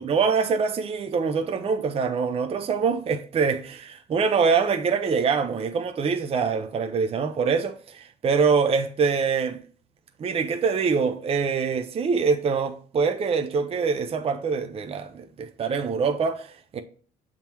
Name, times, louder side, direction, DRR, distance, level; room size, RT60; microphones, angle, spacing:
voice 1, 0.0-9.6 10.2-16.8, right 5 dB, 35° right, 0.6 m, -24 dB
7.2 x 3.7 x 4.4 m
cardioid pair, 110°, 17 cm